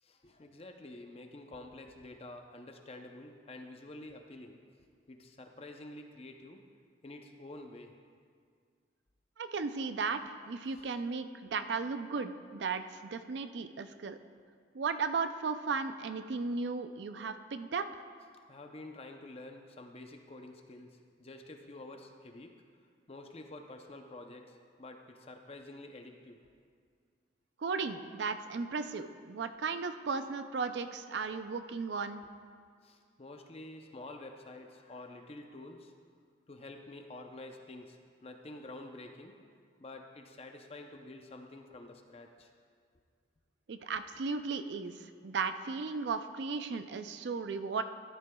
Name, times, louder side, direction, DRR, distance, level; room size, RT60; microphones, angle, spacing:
voice 1, 0.0-4.6 5.1-6.6 7.0-8.0 10.7-10.9 18.5-22.5 23.1-26.4 32.8-35.9 36.5-39.4 39.8-42.5, left 2 dB, 35° left, 4 dB, 0.6 m, -49 dB
voice 2, 9.4-14.2 14.7-17.9 27.6-32.2 43.7-44.9 45.2-47.8, right 4 dB, 70° right, 10 dB, 0.4 m, -35 dB
13.5 x 10.5 x 2.3 m, 2.1 s
head